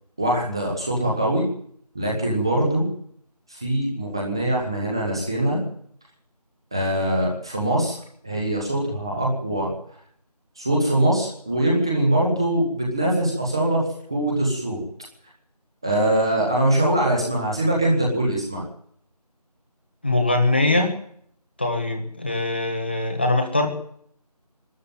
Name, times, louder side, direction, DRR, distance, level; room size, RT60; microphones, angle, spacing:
voice 1, 0.2-1.4 1.9-2.9 3.5-5.6 6.7-8.0 8.2-9.7 10.6-13.8 14.1-14.8 15.8-18.6, right 1 dB, 5° right, -3 dB, 1.3 m, -22 dB
voice 2, 20.0-20.9 21.6-23.7, left 2 dB, 15° left, 4 dB, 1.4 m, -22 dB
24.5 x 13.0 x 9.1 m, 0.66 s
figure-of-eight pair, 170°, 21 cm